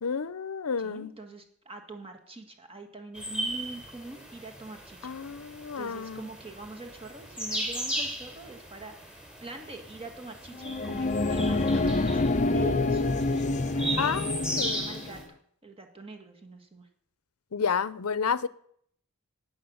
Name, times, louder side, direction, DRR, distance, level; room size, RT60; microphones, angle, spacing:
voice 1, 0.0-1.1 5.0-6.2 12.8-12.9 14.0-14.9 17.5-18.5, left 6 dB, 75° left, 0.6 m, -30 dB
voice 2, 0.8-12.2 12.5-15.2 15.6-16.9, right 3 dB, 25° right, 1.7 m, -44 dB
sound 1, 3.1-15.2, right 1 dB, 5° right, 3.4 m, -37 dB
sound 2, 10.5-15.2, left 2 dB, 35° left, 0.7 m, -27 dB
11.0 x 9.3 x 7.9 m
head